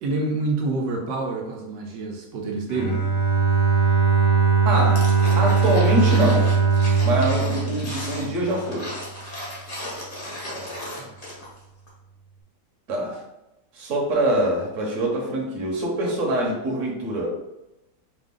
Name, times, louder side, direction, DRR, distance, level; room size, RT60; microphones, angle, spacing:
voice 1, 0.0-3.0 7.5-7.9 10.4-11.2, right 3 dB, 80° right, 0 dB, 1.3 m, -28 dB
Bowed string instrument, 2.7-8.6, right 5 dB, 60° left, 1.7 m, -20 dB
voice 2, 4.6-5.1 5.4-6.5 7.0-8.9 12.9-13.2 13.7-17.3, right 1 dB, 55° right, -2 dB, 1.2 m, -24 dB
sound 1, 4.9-11.6 11.9-12.0, left 1 dB, 25° left, 1.0 m, -35 dB
5.0 x 2.5 x 3.7 m, 0.94 s
omnidirectional pair, 1.8 m